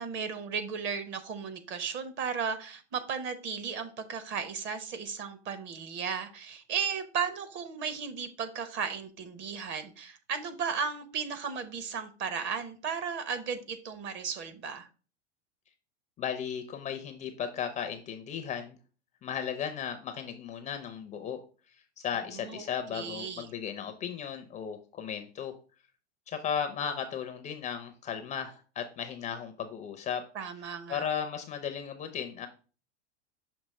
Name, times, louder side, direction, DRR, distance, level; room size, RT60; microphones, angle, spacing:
voice 1, 0.0-14.9 22.3-22.6 22.9-23.5 30.3-31.0, right 6 dB, 35° right, 10 dB, 0.9 m, -35 dB
voice 2, 16.2-18.8 19.2-21.4 22.0-25.6 26.3-30.3 30.9-32.5, left 8 dB, 20° left, 8 dB, 0.5 m, -35 dB
6.3 x 2.8 x 5.4 m, 0.36 s
supercardioid pair, 130°, 35 cm